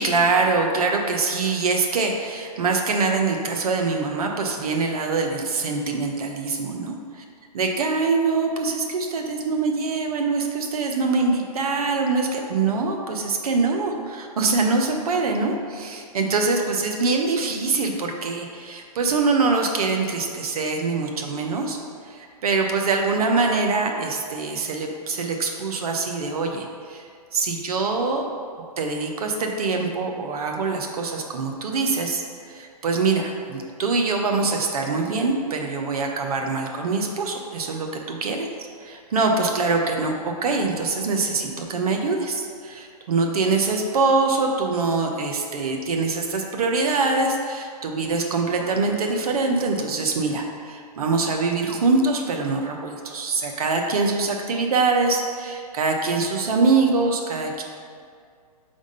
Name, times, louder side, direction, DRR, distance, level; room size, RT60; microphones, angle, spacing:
voice 1, 0.0-7.0 7.5-21.8 22.0-27.1 27.3-28.3 28.8-32.2 32.5-38.5 38.8-57.6, right 4 dB, 65° right, 2 dB, 0.9 m, -24 dB
5.1 x 3.6 x 5.3 m, 2.2 s
hypercardioid pair, 140°, 20 cm